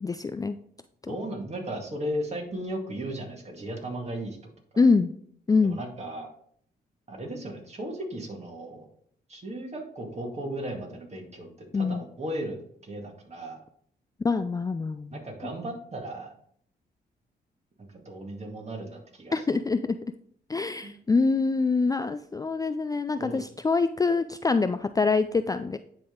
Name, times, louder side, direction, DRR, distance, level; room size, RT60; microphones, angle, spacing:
voice 1, 0.0-0.6 1.0-1.2 4.8-5.1 5.5-5.8 11.7-12.0 14.2-15.2 19.3-20.0 20.5-25.8, left 4 dB, 20° left, 10 dB, 0.3 m, -25 dB
voice 2, 1.1-4.8 5.6-6.3 7.1-8.9 9.3-13.6 15.1-16.3 17.9-19.4 20.8-20.9 23.2-23.4, right 1 dB, 35° right, 1 dB, 2.1 m, -36 dB
9.8 x 3.6 x 3.9 m, 0.63 s
cardioid pair, 65°, 18 cm